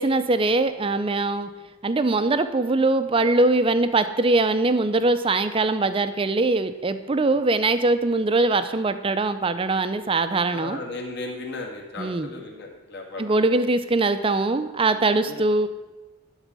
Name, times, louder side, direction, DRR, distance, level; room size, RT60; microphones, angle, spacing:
voice 1, 0.0-1.5 1.8-10.8 12.0-12.3 13.2-15.7, right 2 dB, 25° right, 11 dB, 0.4 m, -22 dB
voice 2, 10.5-13.2 15.2-15.4, left 2 dB, 50° left, 0 dB, 1.7 m, -36 dB
11.5 x 4.1 x 7.4 m, 1.2 s
head